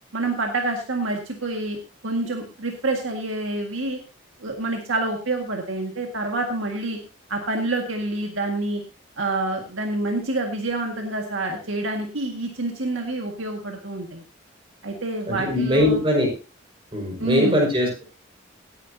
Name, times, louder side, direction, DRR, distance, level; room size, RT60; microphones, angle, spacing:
voice 1, 0.1-4.0 4.4-7.0 7.3-8.8 9.2-14.2 14.8-16.0 17.2-17.7, right 2 dB, 80° right, 2 dB, 1.8 m, -27 dB
voice 2, 15.3-16.3 16.9-18.0, left 1 dB, 25° right, -1 dB, 5.3 m, -21 dB
17.0 x 10.0 x 2.8 m, 0.31 s
head